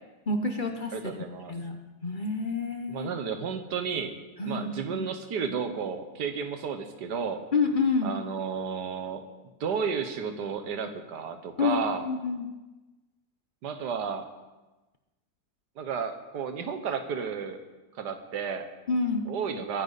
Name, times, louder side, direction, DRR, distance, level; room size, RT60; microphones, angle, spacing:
voice 1, 0.3-0.9 1.5-3.1 4.4-5.1 7.5-8.1 11.6-12.5 18.9-19.2, left 4 dB, 35° left, 5 dB, 0.9 m, -28 dB
voice 2, 0.9-1.5 2.9-4.2 4.5-7.4 8.0-9.2 9.6-12.0 13.6-14.3 15.8-17.6 18.0-18.7 19.3-19.8, right 6 dB, 90° right, 8 dB, 1.7 m, -32 dB
22.0 x 10.5 x 4.1 m, 1.1 s
omnidirectional pair, 1.7 m